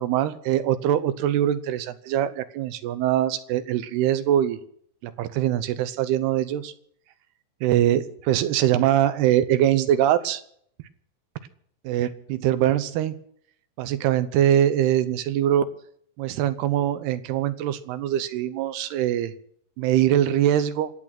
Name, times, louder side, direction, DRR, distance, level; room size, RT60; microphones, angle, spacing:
voice 1, 0.0-4.6 5.0-6.7 7.6-10.4 11.8-13.2 13.8-15.7 16.2-19.3 19.8-20.9, right 11 dB, 80° right, 13 dB, 2.8 m, -23 dB
26.0 x 8.9 x 6.0 m, 0.65 s
omnidirectional pair, 4.7 m